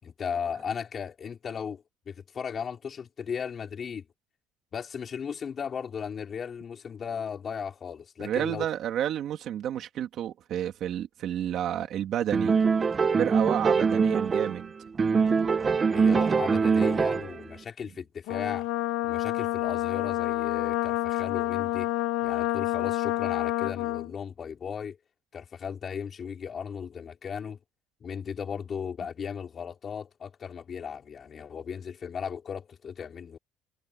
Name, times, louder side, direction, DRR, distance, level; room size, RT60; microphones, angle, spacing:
voice 1, 0.0-4.1 4.7-8.6 13.1-13.2 15.9-18.7 19.0-21.9 22.2-25.0 25.3-27.6 28.0-33.4, left 7 dB, 25° left, 5.1 m, -36 dB
voice 2, 8.2-12.5 13.2-14.7, right 10 dB, 35° right, 3.0 m, -30 dB
sound 1, 12.3-14.7 15.0-17.4, right 5 dB, 15° right, 0.9 m, -23 dB
Brass instrument, 18.3-24.1, left 17 dB, 65° left, 1.7 m, -28 dB
cardioid pair, 175°, 0 cm